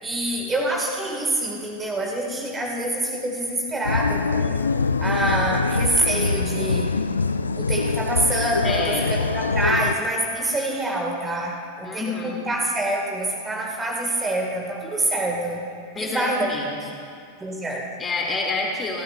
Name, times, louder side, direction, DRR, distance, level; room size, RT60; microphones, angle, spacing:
voice 1, 0.0-4.5 5.0-7.0 7.6-15.6 16.0-16.5 17.4-17.8, right 1 dB, 15° right, 0 dB, 1.8 m, -26 dB
sound 1, 3.8-9.9, left 4 dB, 75° left, 0.4 m, -24 dB
voice 2, 8.6-9.2 11.8-12.4 15.9-16.8 18.0-19.0, left 3 dB, 20° left, -1 dB, 2.3 m, -28 dB
27.5 x 13.0 x 2.4 m, 2.3 s
figure-of-eight pair, 90°, 0 cm